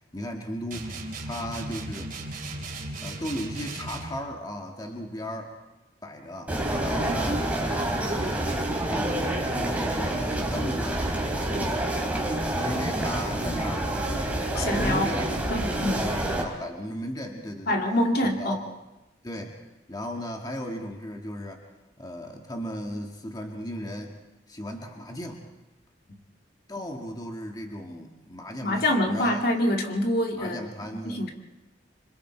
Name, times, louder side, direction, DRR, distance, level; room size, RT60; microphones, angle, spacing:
voice 1, 0.0-2.1 3.0-5.5 6.0-8.5 8.9-9.2 9.5-11.9 12.4-17.8 18.2-18.6 19.2-19.6 19.9-21.7 22.0-24.2 24.5-25.4 26.7-29.5 30.3-31.2, equal, 20° left, 2 dB, 1.8 m, -36 dB
sound 1, 0.7-4.2, right 2 dB, 50° right, 4.1 m, -36 dB
sound 2, 6.5-16.4, right 1 dB, 10° right, 3.4 m, -28 dB
voice 2, 14.6-15.1 15.5-16.0 17.7-18.6 28.6-30.7 31.0-31.3, left 1 dB, 55° left, 2 dB, 2.4 m, -25 dB
27.0 x 26.0 x 4.5 m, 1.0 s
head